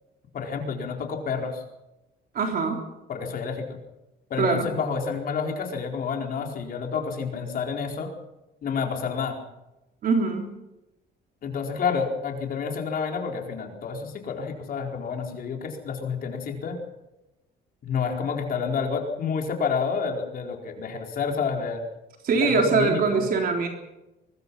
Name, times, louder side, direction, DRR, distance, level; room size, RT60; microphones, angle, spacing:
voice 1, 0.3-1.6 3.1-3.8 4.3-8.1 8.6-9.4 11.4-16.8 17.8-21.8 22.4-23.2, left 5 dB, 50° left, 2 dB, 4.4 m, -29 dB
voice 2, 2.4-2.9 4.4-4.7 10.0-10.5 22.2-23.7, right 4 dB, 50° right, 2 dB, 3.6 m, -23 dB
24.0 x 21.5 x 5.6 m, 0.98 s
cardioid pair, 165°, 19 cm